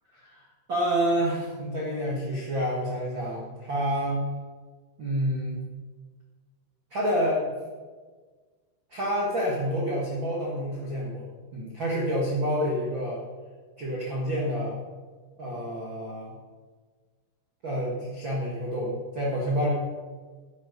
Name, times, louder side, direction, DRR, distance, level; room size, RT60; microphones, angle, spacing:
voice 1, 0.2-4.2 5.0-5.6 6.9-7.5 8.9-11.2 11.5-13.2 13.8-14.8 15.4-16.3 17.6-19.7, equal, 75° right, -4 dB, 1.1 m, -28 dB
10.0 x 10.0 x 5.3 m, 1.4 s
omnidirectional pair, 5.3 m